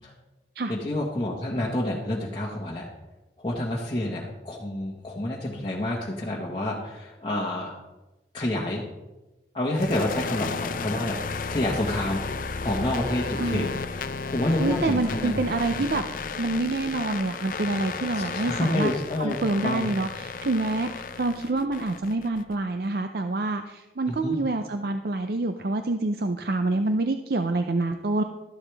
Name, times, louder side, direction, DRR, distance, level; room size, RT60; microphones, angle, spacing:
voice 1, 0.7-2.9 3.4-7.7 8.3-8.9 9.5-15.4 17.9-19.4 19.6-19.9 24.1-24.4, left 1 dB, 25° left, -5 dB, 1.4 m, -29 dB
sound 1, 9.7-22.5, left 4 dB, 50° left, 0.5 m, -33 dB
voice 2, 14.6-16.0 16.4-18.9 19.2-28.2, right 2 dB, 55° right, 7 dB, 0.5 m, -27 dB
13.0 x 11.5 x 3.4 m, 1.1 s
head